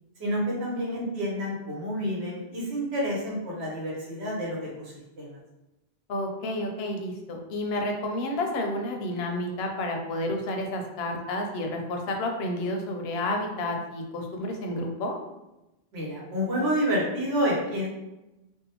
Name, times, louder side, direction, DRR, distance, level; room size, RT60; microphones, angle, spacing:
voice 1, 0.2-5.4 15.9-17.9, equal, 85° right, -4 dB, 1.1 m, -29 dB
voice 2, 6.1-15.2, left 1 dB, 75° left, 3 dB, 0.8 m, -30 dB
2.7 x 2.1 x 2.8 m, 0.98 s
omnidirectional pair, 1.1 m